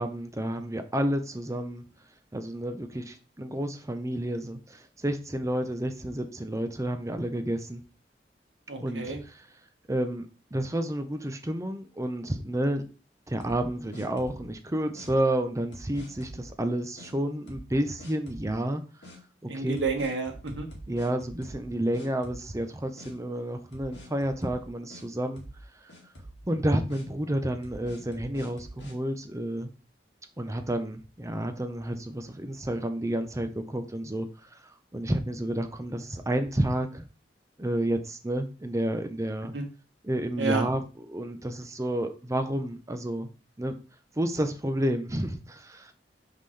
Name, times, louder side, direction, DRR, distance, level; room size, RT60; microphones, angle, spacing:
voice 1, 0.0-1.8 2.3-7.8 8.8-9.5 9.9-12.8 13.3-18.8 19.4-19.8 20.9-25.4 25.8-25.9 26.5-29.7 30.4-34.6 34.9-37.0 37.6-39.5 40.0-43.3 43.6-43.7 44.2-45.9, right 1 dB, 20° right, 0.7 m, -30 dB
voice 2, 8.7-9.2 19.5-20.7 39.5-39.6 40.4-40.7, right 4 dB, 85° right, 1.5 m, -29 dB
sound 1, 13.4-14.5 14.9-15.1 15.7-16.5 17.0-17.1 17.5-17.7 18.0-18.5 19.0-19.2 19.8-21.7 21.9-22.7 23.0-23.1 23.7-25.0 25.4-25.6 25.9-26.4 26.9-27.0 27.6-28.9, right 1 dB, 70° left, 2.1 m, -45 dB
5.9 x 5.5 x 3.3 m
head